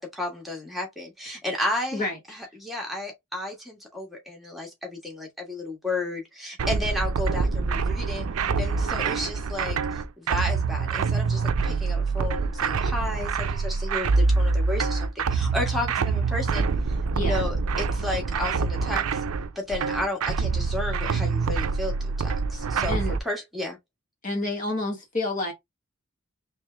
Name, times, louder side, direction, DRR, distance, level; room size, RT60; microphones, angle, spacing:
voice 1, 0.0-8.2 8.6-9.8 10.2-16.7 17.1-19.2 19.5-23.0 23.2-23.8, left 1 dB, ahead, 1.4 m, -32 dB
sound 1, 6.6-23.2, right 4 dB, 85° right, 0.4 m, -25 dB
voice 2, 24.2-25.5, left 2 dB, 35° left, 1.0 m, -29 dB
3.3 x 3.2 x 3.3 m
head